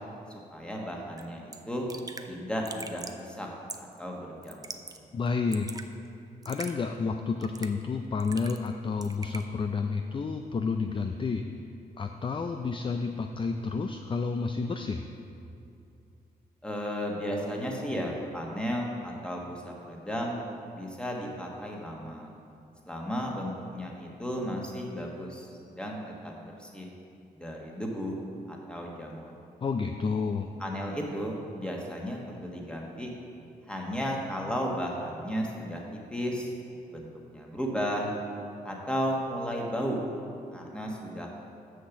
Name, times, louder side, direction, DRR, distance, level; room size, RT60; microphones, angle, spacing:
voice 1, 0.3-1.9 2.3-3.5 3.8-4.7 16.6-20.4 20.8-22.3 22.9-25.5 25.8-26.3 26.6-26.9 27.4-29.3 30.6-33.1 33.7-36.5 36.9-38.1 38.6-40.0 40.5-41.3, equal, 5° left, -1 dB, 1.5 m, -34 dB
Raindrop / Drip, 1.2-1.3 1.5-1.6 1.9-2.3 2.7-3.2 3.7-4.0 4.4-5.0 5.3-5.9 6.4-6.7 7.4-7.8 8.2-8.7 9.0-9.4, right 3 dB, 25° right, 0.5 m, -41 dB
voice 2, 5.1-5.7 6.5-11.4 12.0-15.0 29.6-30.5, left 4 dB, 30° left, 6 dB, 0.4 m, -30 dB
6.4 x 5.6 x 7.1 m, 2.6 s
cardioid pair, 75°, 16 cm